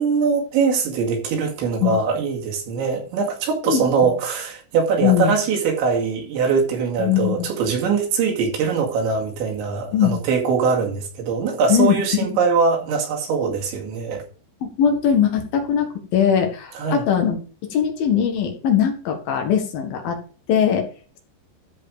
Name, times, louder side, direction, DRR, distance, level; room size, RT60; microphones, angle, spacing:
voice 1, 0.0-14.2 16.8-17.1, right 5 dB, 75° right, 4.3 m, -22 dB
voice 2, 3.6-4.1 5.0-5.3 7.0-7.5 9.9-10.1 11.7-12.0 14.6-17.4 17.6-20.2 20.5-20.9, left 8 dB, 60° left, 3.0 m, -20 dB
13.5 x 4.9 x 5.0 m
omnidirectional pair, 5.5 m